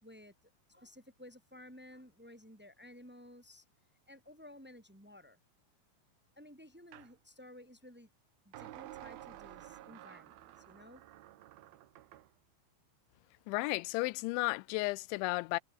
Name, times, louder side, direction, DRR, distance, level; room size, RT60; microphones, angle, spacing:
voice 1, 0.0-0.3 0.7-3.6 4.1-5.4 6.3-8.1 8.4-11.0, left 1 dB, 10° right, 0.7 m, -55 dB
sound 1, 6.9-7.1 8.5-12.3, right 14 dB, 65° right, 2.7 m, -51 dB
voice 2, 13.5-15.6, left 24 dB, 85° left, 2.9 m, -33 dB
omnidirectional pair, 5.2 m